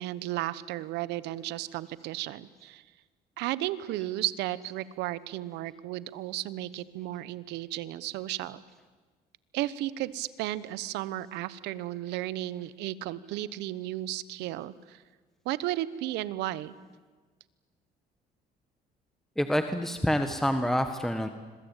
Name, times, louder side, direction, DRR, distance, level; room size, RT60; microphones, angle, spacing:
voice 1, 0.0-2.8 3.4-8.6 9.5-15.0 15.4-16.7, right 15 dB, 90° right, 18 dB, 1.0 m, -34 dB
voice 2, 19.4-21.3, equal, ahead, 8 dB, 1.5 m, -27 dB
26.0 x 23.0 x 9.0 m, 1.4 s
cardioid pair, 110°, 17 cm